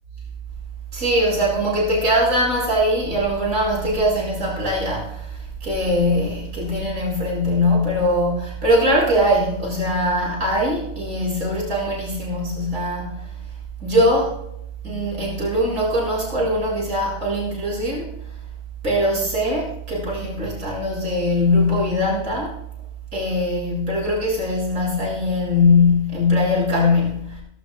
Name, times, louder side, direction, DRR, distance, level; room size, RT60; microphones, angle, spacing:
voice 1, 0.9-13.3 13.8-14.4 14.8-18.1 18.8-22.6 23.1-27.4, left 1 dB, 90° right, -4 dB, 8.0 m, -21 dB
22.5 x 18.0 x 2.5 m, 0.76 s
omnidirectional pair, 1.4 m